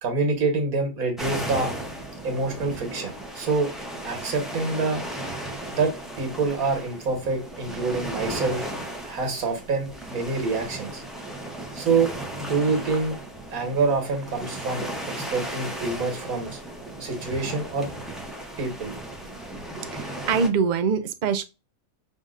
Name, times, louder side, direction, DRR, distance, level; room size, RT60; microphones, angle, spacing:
voice 1, 0.0-1.7 2.2-3.7 4.0-5.0 5.7-8.7 9.0-11.0 11.8-12.1 12.4-13.2 13.5-16.6 17.0-17.9 18.6-18.9, right 3 dB, 90° right, 1.8 m, -26 dB
sound 1, 1.2-20.5, right 1 dB, ahead, 0.6 m, -35 dB
voice 2, 19.9-21.4, right 5 dB, 60° right, 0.4 m, -24 dB
5.1 x 2.6 x 2.5 m
omnidirectional pair, 1.5 m